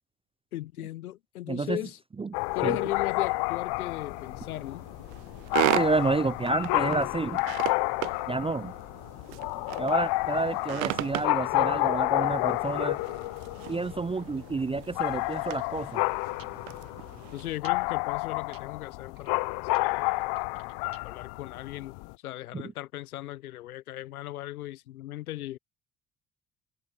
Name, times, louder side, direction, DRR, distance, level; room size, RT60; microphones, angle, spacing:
voice 1, 0.5-2.0 2.5-4.8 17.3-20.1 21.0-25.6, left 14 dB, 90° left, 0.9 m, -38 dB
voice 2, 1.5-1.8 2.2-2.3 2.6-2.8 5.7-7.4 8.3-8.7 9.8-13.0 13.7-16.0 22.5-22.6, right 3 dB, 15° right, 0.5 m, -29 dB
sound 1, 2.3-22.1, left 26 dB, 65° left, 0.6 m, -30 dB
sound 2, 3.8-17.6, right 34 dB, 75° right, 0.5 m, -37 dB
sound 3, 15.6-15.7 16.4-16.5 17.4-17.8 18.5-18.6 18.9-19.4 19.7-21.3, right 10 dB, 50° right, 2.7 m, -54 dB
hypercardioid pair, 55°, 42 cm